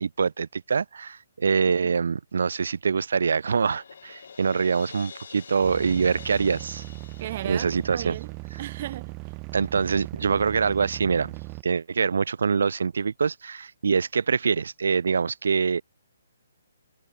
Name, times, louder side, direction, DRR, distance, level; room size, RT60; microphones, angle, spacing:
voice 1, 0.0-6.8 7.4-8.2 9.5-11.3 11.6-15.8, right 5 dB, 75° right, 1.2 m, -24 dB
Crash cymbal, 3.5-8.4, left 6 dB, 65° left, 2.8 m, -47 dB
sound 1, 5.6-11.6, right 30 dB, 25° right, 4.8 m, -38 dB
voice 2, 7.2-9.3, right 12 dB, 40° right, 0.9 m, -36 dB
hypercardioid pair, 160°, 0 cm